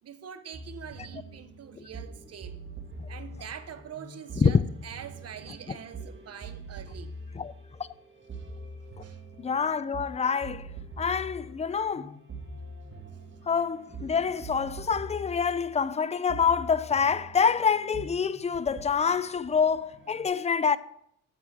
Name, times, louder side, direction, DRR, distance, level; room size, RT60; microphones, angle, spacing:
voice 1, 0.0-2.6 3.1-7.2 9.0-9.2, right 8 dB, 55° right, 1.2 m, -44 dB
sound 1, 0.5-20.3, right 2 dB, 40° right, 1.9 m, -44 dB
voice 2, 9.4-10.7 11.0-12.2 13.5-20.8, left 6 dB, 20° left, 0.5 m, -26 dB
8.7 x 8.0 x 6.2 m
cardioid pair, 90°, 30 cm